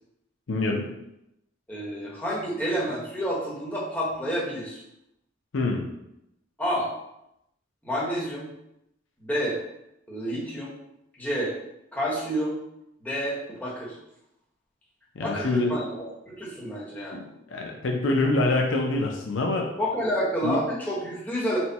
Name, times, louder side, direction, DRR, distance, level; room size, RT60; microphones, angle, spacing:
voice 1, 0.5-0.9 5.5-5.9 15.2-15.8 17.1-17.2 17.5-19.7 20.4-20.6, left 2 dB, 65° left, 1 dB, 0.5 m, -25 dB
voice 2, 1.7-4.8 6.6-6.9 7.8-8.5 9.2-9.6 10.1-10.8 11.2-11.5 11.9-12.6 13.0-14.0 15.2-17.2 19.8-21.6, equal, 10° left, -6 dB, 1.1 m, -29 dB
4.4 x 2.2 x 4.0 m, 0.83 s
head